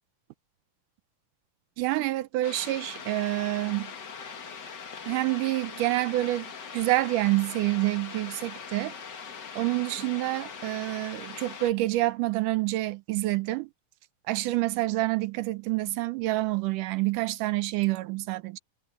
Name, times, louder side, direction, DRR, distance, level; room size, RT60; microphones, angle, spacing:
voice 1, 1.8-3.9 5.1-9.0 9.6-13.7 14.3-18.6, right 18 dB, 75° right, 2.1 m, -27 dB
sound 1, 2.4-11.7, left 6 dB, 45° left, 1.5 m, -41 dB
omnidirectional pair, 4.0 m